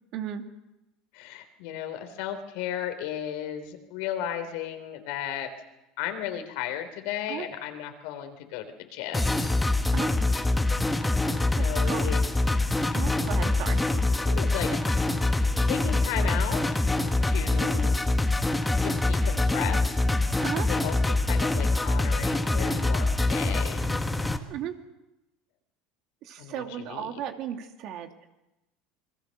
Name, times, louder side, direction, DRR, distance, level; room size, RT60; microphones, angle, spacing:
voice 1, 0.1-0.4 7.3-7.5 9.9-10.1 11.5-12.1 12.9-13.8 20.4-20.7 24.5-24.7 26.2-28.1, right 10 dB, 55° right, 6 dB, 2.5 m, -35 dB
voice 2, 1.1-5.5 6.0-9.5 11.6-12.2 14.3-14.8 15.6-16.7 17.3-18.0 18.8-19.9 20.7-24.0 26.4-27.2, left 10 dB, 75° left, 7 dB, 3.6 m, -35 dB
sound 1, 9.1-24.4, left 2 dB, 10° left, 1.6 m, -25 dB
28.0 x 22.0 x 6.6 m, 0.94 s
supercardioid pair, 130°, 0 cm